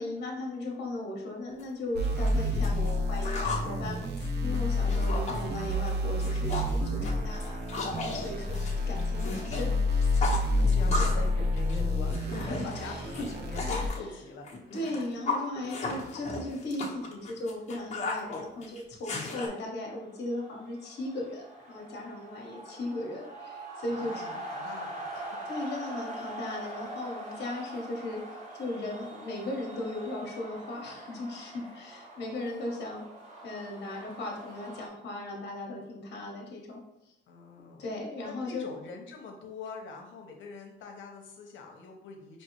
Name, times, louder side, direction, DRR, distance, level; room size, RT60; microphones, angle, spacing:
voice 1, 0.0-4.0 4.4-8.6 8.9-10.1 12.3-13.3 13.9-14.1 14.7-24.3 25.4-33.0 33.4-37.1 37.8-38.7, left 2 dB, 60° left, -2 dB, 1.2 m, -37 dB
sound 1, 1.6-1.7 2.0-3.7 4.0-5.4 5.7-6.0 6.2-6.8 7.0-9.6 9.9-11.3 11.6-14.0 14.5-19.5, left 3 dB, 35° left, 1.1 m, -35 dB
sound 2, 1.9-13.9, left 1 dB, 55° right, 0.8 m, -29 dB
voice 2, 8.2-8.6 10.6-14.8 23.9-25.5 37.3-37.8 38.2-42.4, left 4 dB, 75° left, 1 dB, 0.9 m, -44 dB
sound 3, 20.1-34.9, right 1 dB, 35° right, 1.3 m, -43 dB
4.6 x 2.9 x 3.0 m, 0.88 s
cardioid pair, 90°, 20 cm